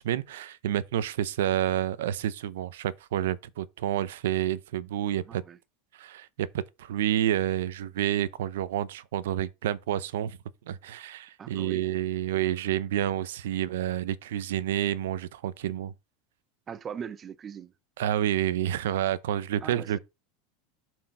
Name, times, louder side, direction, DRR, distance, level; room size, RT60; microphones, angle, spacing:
voice 1, 0.0-5.4 5.9-10.4 10.7-15.9 18.0-20.0, right 11 dB, 90° right, 0.7 m, -29 dB
voice 2, 5.2-5.6 11.4-11.9 16.7-17.7 19.6-20.0, right 7 dB, 20° right, 0.5 m, -40 dB
7.5 x 4.5 x 5.4 m
supercardioid pair, 150°, 0 cm